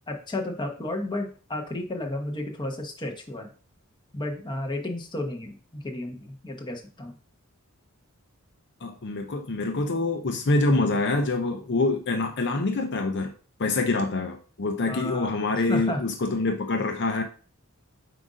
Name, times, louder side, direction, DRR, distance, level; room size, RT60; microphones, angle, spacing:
voice 1, 0.1-3.5 4.1-7.1 14.9-15.3 15.7-16.0, left 1 dB, 20° left, 2 dB, 1.1 m, -32 dB
voice 2, 8.8-13.3 13.6-17.2, left 2 dB, 50° left, 4 dB, 0.6 m, -25 dB
7.7 x 2.6 x 5.0 m, 0.38 s
head